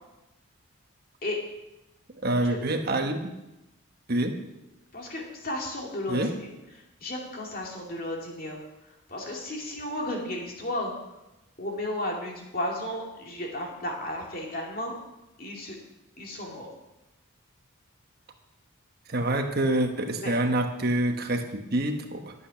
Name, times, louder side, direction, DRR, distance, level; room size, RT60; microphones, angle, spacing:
voice 1, 2.2-3.3 4.1-4.4 6.1-6.3 19.1-22.3, right 1 dB, 45° right, 5 dB, 1.2 m, -26 dB
voice 2, 4.9-6.5 7.0-10.9 11.6-14.9 15.4-15.8 16.2-16.7 20.2-20.3, left 1 dB, 40° left, -1 dB, 2.4 m, -34 dB
12.5 x 8.4 x 5.9 m, 0.96 s
head